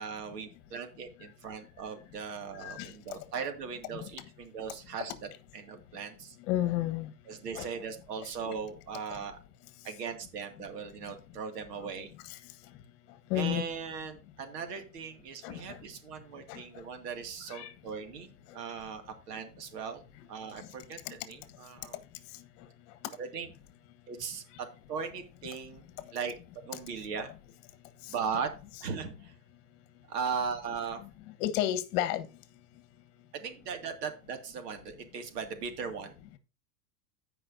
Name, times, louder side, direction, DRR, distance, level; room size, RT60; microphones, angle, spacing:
voice 1, 0.0-5.1 5.5-6.4 7.3-9.4 9.8-12.1 13.3-18.3 18.5-20.0 20.3-22.0 23.2-23.5 24.1-25.9 26.1-26.3 26.6-27.3 28.1-28.5 28.8-29.3 30.1-31.0 33.3-36.2, right 6 dB, 75° right, 2.3 m, -38 dB
voice 2, 2.6-2.9 4.0-4.1 6.5-7.1 7.5-7.7 13.3-13.6 15.4-15.8 16.5-16.6 17.5-17.7 31.4-32.3, left 13 dB, 50° left, 1.4 m, -31 dB
15.5 x 5.4 x 2.7 m
supercardioid pair, 150°, 48 cm